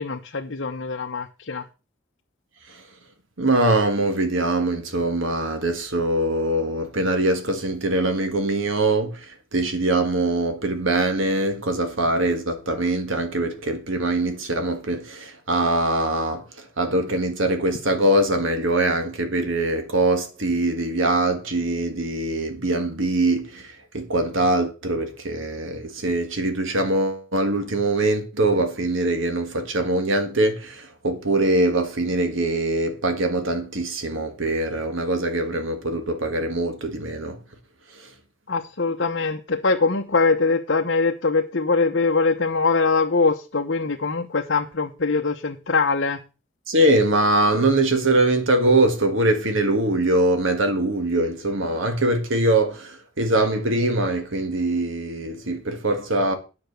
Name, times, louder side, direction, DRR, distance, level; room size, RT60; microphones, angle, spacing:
voice 1, 0.0-1.6 38.5-46.2, left 4 dB, 60° left, 0.9 m, -22 dB
voice 2, 3.4-37.4 38.0-38.1 46.7-56.4, right 2 dB, 75° right, 1.6 m, -23 dB
9.8 x 5.9 x 6.8 m
head